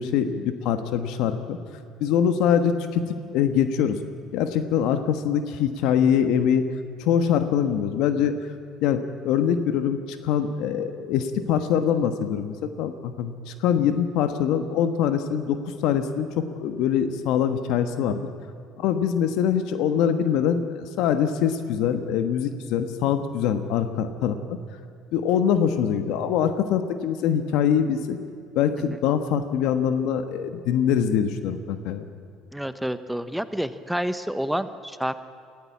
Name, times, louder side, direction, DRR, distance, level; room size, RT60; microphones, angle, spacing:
voice 1, 0.0-1.6 2.0-3.1 3.3-4.0 4.3-6.7 7.0-8.3 8.8-18.3 18.8-24.6 25.1-28.2 28.5-32.1, left 8 dB, 70° left, 9 dB, 1.3 m, -23 dB
voice 2, 32.5-35.1, equal, 5° right, 12 dB, 0.9 m, -29 dB
19.5 x 16.0 x 8.6 m, 2.3 s
supercardioid pair, 100°, 0 cm